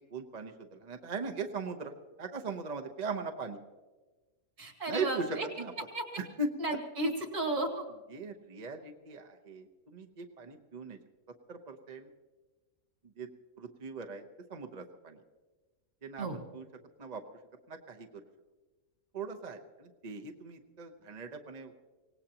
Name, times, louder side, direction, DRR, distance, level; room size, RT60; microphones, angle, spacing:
voice 1, 0.1-3.6 4.9-5.7 6.2-6.5 8.1-11.0 11.5-12.1 13.2-13.3 13.6-15.2 16.0-16.7 17.0-17.2 17.7-18.1 19.1-21.7, right 4 dB, 35° right, 5 dB, 0.7 m, -39 dB
voice 2, 4.6-5.5 5.9-6.0 6.6-7.8 16.2-16.4, right 1 dB, 55° right, 2 dB, 2.5 m, -33 dB
24.5 x 18.0 x 2.9 m, 1.3 s
omnidirectional pair, 1.6 m